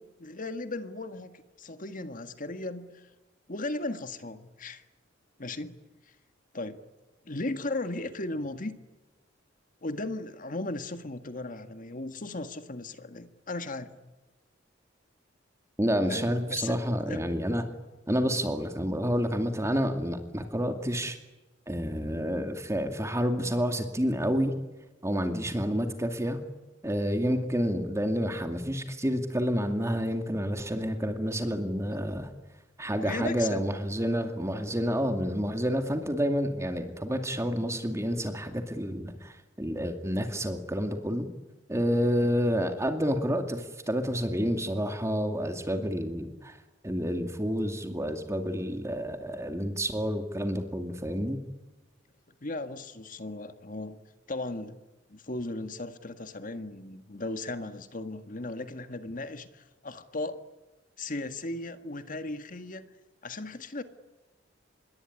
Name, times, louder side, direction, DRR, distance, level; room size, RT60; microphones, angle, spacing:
voice 1, 0.0-3.1 3.5-4.8 5.4-5.8 6.0-6.1 6.5-6.8 7.2-8.7 9.8-13.9 16.0-16.8 17.1-17.2 33.0-33.6 52.4-54.0 54.3-54.8 55.1-60.4 61.0-62.9 63.2-63.8, left 2 dB, 45° left, 9 dB, 1.7 m, -36 dB
voice 2, 15.8-17.6 18.1-21.2 21.7-24.5 25.0-26.4 26.8-32.3 32.8-41.3 41.7-46.6 46.8-51.4, equal, 15° right, 5 dB, 2.4 m, -29 dB
27.0 x 22.0 x 9.9 m, 1.1 s
head